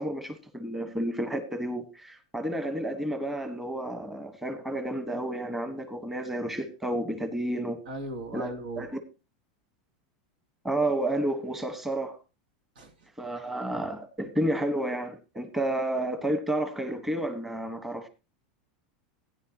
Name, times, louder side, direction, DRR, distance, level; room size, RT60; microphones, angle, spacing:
voice 1, 0.0-7.8 8.3-8.9 10.6-12.2 13.2-18.1, right 1 dB, 5° right, 1.3 m, -31 dB
voice 2, 7.9-8.9 12.7-13.1, right 2 dB, 85° right, 2.8 m, -38 dB
16.5 x 9.7 x 2.9 m
supercardioid pair, 145°, 4 cm